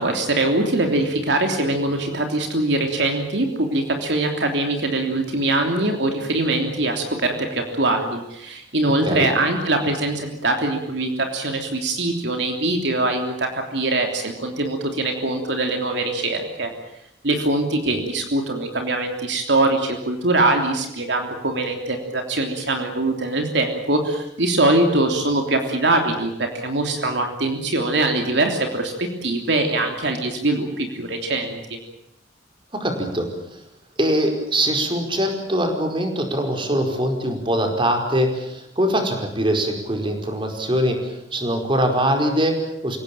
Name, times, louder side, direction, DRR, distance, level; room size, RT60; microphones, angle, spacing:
voice 1, 0.0-16.7 17.2-31.8, right 2 dB, 65° right, 3 dB, 3.2 m, -22 dB
voice 2, 32.7-33.6 34.0-43.0, right 1 dB, 30° right, 3 dB, 4.8 m, -23 dB
27.5 x 17.5 x 8.9 m, 0.81 s
head